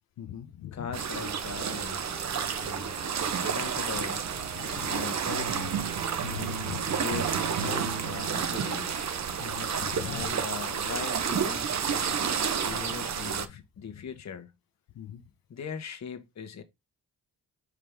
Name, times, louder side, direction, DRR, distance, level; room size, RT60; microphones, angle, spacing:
voice 1, 0.2-1.0 4.5-5.1 6.2-6.9 9.2-10.4 12.0-12.1 13.5-13.6 13.9-14.1 14.9-15.2, left 10 dB, 85° left, 1.0 m, -41 dB
voice 2, 0.7-2.0 2.6-3.0 3.4-4.3 4.9-5.7 7.0-9.2 10.0-12.1 12.6-14.5 15.5-16.6, left 6 dB, 50° left, 1.3 m, -40 dB
sound 1, 0.9-13.5, right 7 dB, 50° right, 1.0 m, -31 dB
Wind instrument woodwind instrument, 1.2-8.8, right 2 dB, 25° right, 1.2 m, -51 dB
sound 2, 5.3-10.2, right 6 dB, 85° right, 1.2 m, -37 dB
5.4 x 4.8 x 3.5 m
cardioid pair, 80°, 34 cm